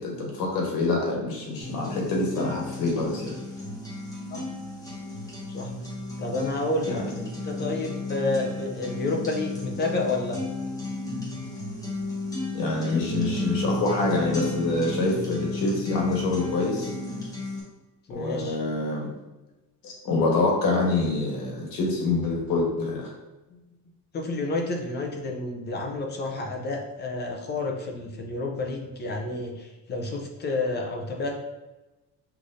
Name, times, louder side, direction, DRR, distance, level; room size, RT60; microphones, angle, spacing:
voice 1, 0.0-3.3 6.9-7.0 12.5-16.9 18.1-19.1 19.8-23.1, left 2 dB, 80° left, -1 dB, 1.4 m, -26 dB
sound 1, 1.6-17.6, left 2 dB, 10° left, 0.9 m, -33 dB
voice 2, 6.2-10.4 18.1-18.6 23.5-23.6 24.1-31.4, left 2 dB, 30° left, 2 dB, 0.7 m, -30 dB
5.8 x 3.3 x 2.6 m, 1.1 s
cardioid pair, 165°, 34 cm